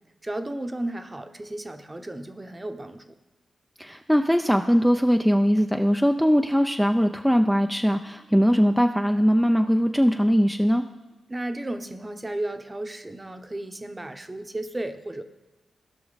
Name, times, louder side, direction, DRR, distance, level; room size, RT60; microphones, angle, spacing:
voice 1, 0.2-3.1 11.3-15.2, right 1 dB, 25° right, 8 dB, 0.9 m, -34 dB
voice 2, 3.8-10.8, equal, ahead, 5 dB, 0.5 m, -21 dB
16.5 x 5.9 x 4.1 m, 1.2 s
cardioid pair, 50°, 0 cm